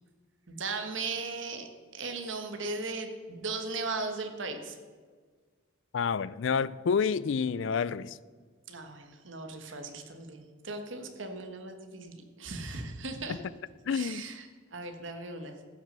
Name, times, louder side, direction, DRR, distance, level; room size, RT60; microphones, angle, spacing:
voice 1, 0.5-1.7 1.9-4.8 8.7-13.4 13.9-15.5, right 3 dB, 65° right, 1.4 m, -37 dB
voice 2, 5.9-8.2 13.3-13.4 13.9-14.2, left 6 dB, 65° left, 0.4 m, -29 dB
15.0 x 6.2 x 6.7 m
head